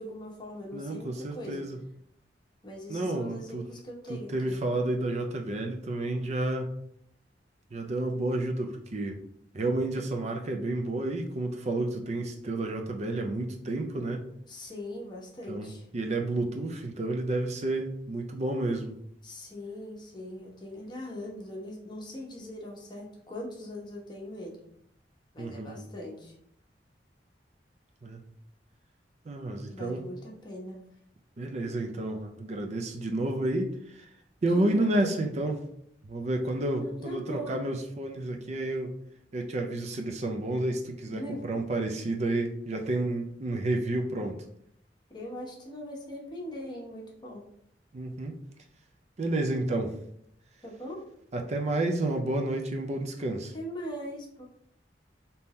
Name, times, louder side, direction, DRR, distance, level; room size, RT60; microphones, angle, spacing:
voice 1, 0.0-1.6 2.6-4.6 14.5-15.9 19.2-24.6 25.3-26.3 29.7-30.9 34.5-35.1 36.8-37.6 41.1-41.4 45.1-47.5 50.6-51.0 53.5-54.4, left 1 dB, 25° left, -2 dB, 1.0 m, -41 dB
voice 2, 0.7-1.8 2.9-3.6 4.1-6.7 7.7-9.2 9.5-14.3 15.5-18.9 25.4-25.9 28.0-28.2 29.3-30.1 31.4-34.1 34.4-35.6 36.0-38.9 39.3-44.4 47.9-48.4 49.2-50.0 51.3-53.5, right 2 dB, 40° right, 4 dB, 0.4 m, -30 dB
3.6 x 2.8 x 4.1 m, 0.70 s
head